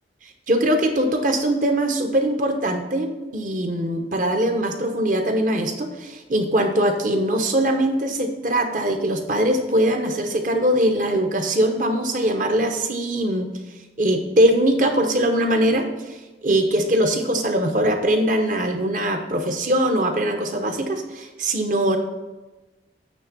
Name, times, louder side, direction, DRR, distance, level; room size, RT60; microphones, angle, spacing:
voice 1, 0.5-13.5 14.0-22.0, right 1 dB, 45° right, 5 dB, 0.9 m, -21 dB
8.7 x 3.5 x 6.7 m, 1.1 s
head